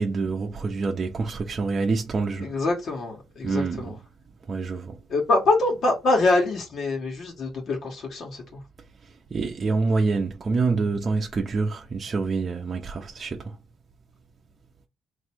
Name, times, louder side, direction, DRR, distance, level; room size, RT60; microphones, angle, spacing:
voice 1, 0.0-2.5 3.4-3.9 4.5-5.0 9.0-13.6, right 4 dB, 40° right, 0.6 m, -26 dB
voice 2, 2.4-4.0 5.1-8.6, left 2 dB, 65° left, 1.3 m, -24 dB
3.3 x 2.6 x 4.4 m
cardioid pair, 90°, 0 cm